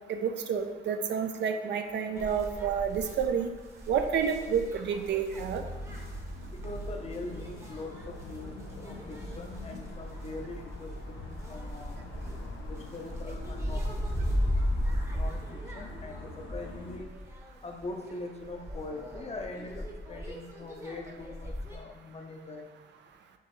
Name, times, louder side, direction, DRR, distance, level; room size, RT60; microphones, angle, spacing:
voice 1, 0.1-3.5 3.9-5.6, right 7 dB, 65° right, 6 dB, 0.4 m, -29 dB
sound 1, 2.1-21.8, equal, 15° right, 0.8 m, -37 dB
sound 2, 5.3-17.0, equal, 75° left, 0.6 m, -42 dB
voice 2, 6.5-12.1 12.7-13.9 15.1-17.2 17.6-22.7, left 3 dB, 30° left, 2 dB, 0.6 m, -42 dB
4.5 x 3.1 x 3.1 m, 1.2 s
cardioid pair, 90°, 20 cm